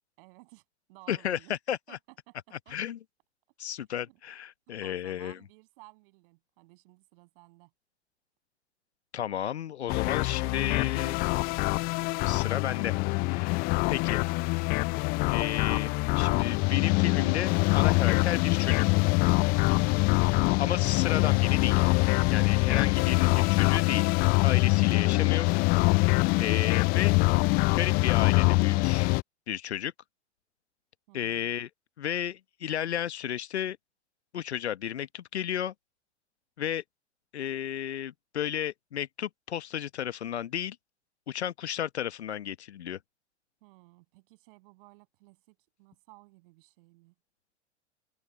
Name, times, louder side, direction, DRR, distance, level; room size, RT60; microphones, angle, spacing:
voice 1, 0.2-0.6 0.9-1.6 1.9-2.4 2.7-2.8 4.1-4.2 4.8-7.7 20.2-20.5 31.1-31.6 43.6-47.1, right 24 dB, 50° right, 7.2 m, -56 dB
voice 2, 1.1-1.4 1.7-2.0 2.7-3.0 3.6-5.4 9.1-11.3 12.2-12.9 13.3-13.6 13.9-14.2 15.3-19.0 20.6-21.9 22.3-24.1 24.4-25.5 26.4-27.1 27.7-29.1 29.5-29.9 31.1-31.7 32.0-33.8 34.3-35.7 36.6-36.8 37.3-40.8 41.3-43.0, left 10 dB, 65° left, 1.2 m, -33 dB
sound 1, 9.9-29.2, left 27 dB, 25° left, 0.4 m, -24 dB
open air
figure-of-eight pair, 95°, 35 cm